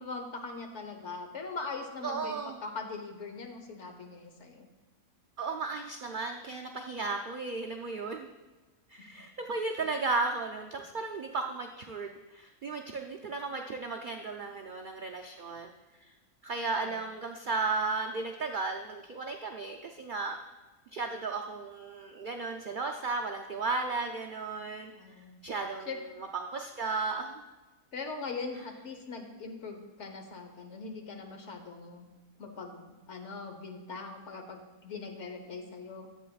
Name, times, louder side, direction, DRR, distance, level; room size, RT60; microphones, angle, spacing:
voice 1, 0.0-4.7 16.8-17.0 24.9-25.4 25.9-26.0 27.9-32.1 32.4-36.1, left 4 dB, 55° left, 4 dB, 1.2 m, -41 dB
voice 2, 2.0-2.6 5.4-8.3 8.9-16.1 16.4-20.4 20.9-24.9 25.4-27.4, right 3 dB, 90° right, 2 dB, 0.4 m, -35 dB
11.5 x 8.1 x 2.3 m, 1.2 s
omnidirectional pair, 1.5 m